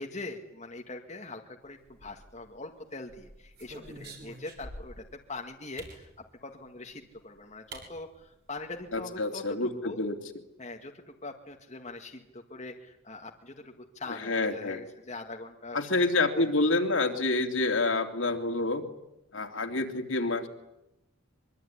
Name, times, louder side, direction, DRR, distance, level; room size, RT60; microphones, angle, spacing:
voice 1, 0.0-6.1 6.4-10.0 10.6-15.9 16.1-16.5, left 2 dB, 35° left, 2 dB, 2.1 m, -42 dB
sound 1, 1.9-2.6 3.1-5.1 5.8-6.0 7.1-7.2 7.7-7.9 8.2-8.3 8.6-9.0, right 2 dB, 50° right, 7.3 m, -46 dB
voice 2, 8.9-10.1 14.2-14.8 15.7-18.8 19.3-20.5, left 2 dB, 65° left, 4 dB, 3.2 m, -28 dB
25.0 x 24.0 x 10.0 m, 0.88 s
head